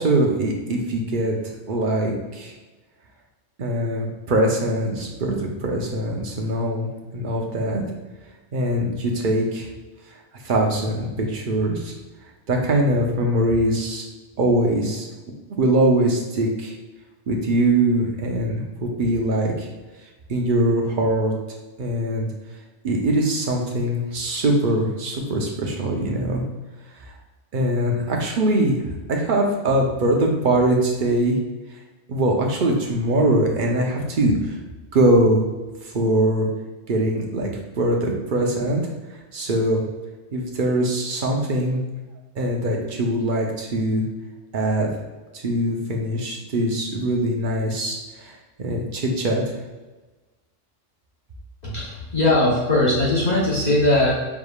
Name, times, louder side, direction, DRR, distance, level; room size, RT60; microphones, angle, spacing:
voice 1, 0.0-1.3 1.7-2.5 3.6-7.8 8.5-9.7 10.4-11.9 12.5-14.1 14.4-15.1 15.6-16.7 17.3-19.7 20.3-21.3 21.8-22.3 22.8-26.4 27.5-28.8 29.1-31.4 32.1-34.6 34.9-35.4 35.8-36.5 36.9-37.5 37.8-38.8 39.3-39.8 40.3-41.8 42.4-44.0 44.5-44.9 45.3-48.3 48.6-49.4, right 1 dB, 50° right, 0 dB, 0.8 m, -22 dB
voice 2, 51.6-54.1, left 1 dB, 35° left, -7 dB, 1.1 m, -19 dB
4.8 x 3.5 x 2.3 m, 1.2 s
omnidirectional pair, 1.3 m